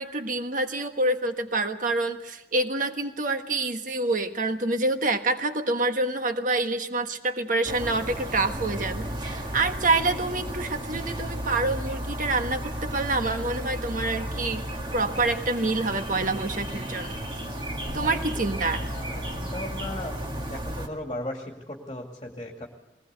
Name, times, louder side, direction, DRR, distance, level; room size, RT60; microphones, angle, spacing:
voice 1, 0.0-14.6 14.9-17.2 17.9-18.8, right 2 dB, 45° right, 7 dB, 1.4 m, -27 dB
sound 1, 7.6-20.9, right 1 dB, 25° right, 2.0 m, -33 dB
voice 2, 18.9-20.2 20.5-22.7, left 1 dB, 25° left, 1 dB, 2.3 m, -37 dB
21.5 x 19.5 x 8.1 m, 0.93 s
head